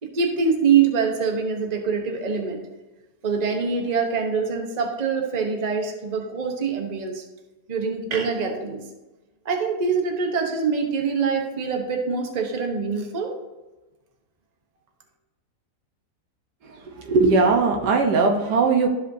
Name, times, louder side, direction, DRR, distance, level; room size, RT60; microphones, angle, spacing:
voice 1, 0.0-2.6 3.2-7.2 7.7-8.8 9.4-13.3, right 5 dB, 30° right, 3 dB, 1.0 m, -24 dB
voice 2, 17.0-18.9, right 4 dB, 80° right, 2 dB, 1.6 m, -19 dB
13.0 x 5.1 x 2.7 m, 1.1 s
omnidirectional pair, 1.7 m